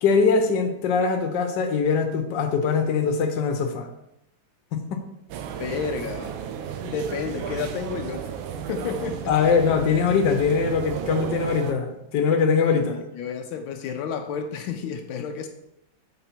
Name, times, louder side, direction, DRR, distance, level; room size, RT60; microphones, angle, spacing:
voice 1, 0.0-3.9 4.7-5.0 9.3-13.0, left 5 dB, 70° left, 5 dB, 1.4 m, -22 dB
sound 1, 5.3-11.7, right 8 dB, 85° right, 1.4 m, -33 dB
voice 2, 5.6-6.4 6.8-8.2 8.7-9.5 12.7-15.5, left 6 dB, 85° left, 5 dB, 1.4 m, -31 dB
6.9 x 4.2 x 4.2 m, 0.84 s
omnidirectional pair, 2.1 m